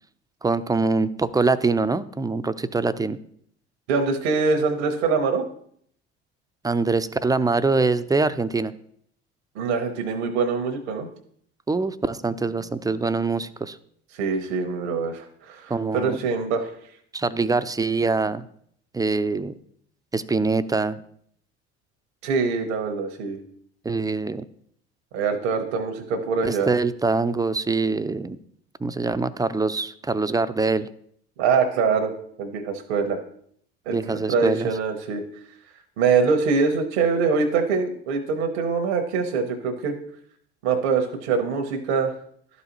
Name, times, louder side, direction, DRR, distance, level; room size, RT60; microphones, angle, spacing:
voice 1, 0.4-3.2 6.6-8.8 11.7-13.8 15.7-16.2 17.1-18.4 18.9-19.5 20.1-21.0 23.8-24.5 26.4-28.4 28.8-30.9 33.9-34.7, right 3 dB, 10° right, 12 dB, 0.4 m, -24 dB
voice 2, 3.9-5.4 9.5-11.1 14.1-16.7 22.2-23.4 25.1-26.7 31.4-32.1 32.4-33.2 33.9-35.2 36.0-39.9 40.6-42.1, right 5 dB, 75° right, 5 dB, 0.9 m, -24 dB
12.0 x 4.1 x 2.9 m, 0.66 s
hypercardioid pair, 60°, 33 cm